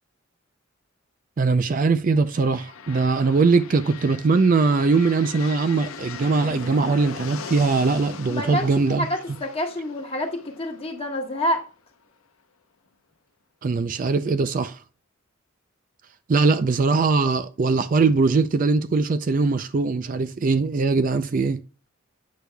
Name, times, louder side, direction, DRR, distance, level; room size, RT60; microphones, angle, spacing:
voice 1, 1.4-9.1 13.6-14.8 16.3-21.6, right 4 dB, 40° right, 0.4 m, -21 dB
sound 1, 2.2-12.0, left 5 dB, 90° left, 0.7 m, -40 dB
voice 2, 8.3-11.7, left 1 dB, 30° left, 1.4 m, -28 dB
8.4 x 6.3 x 2.2 m
head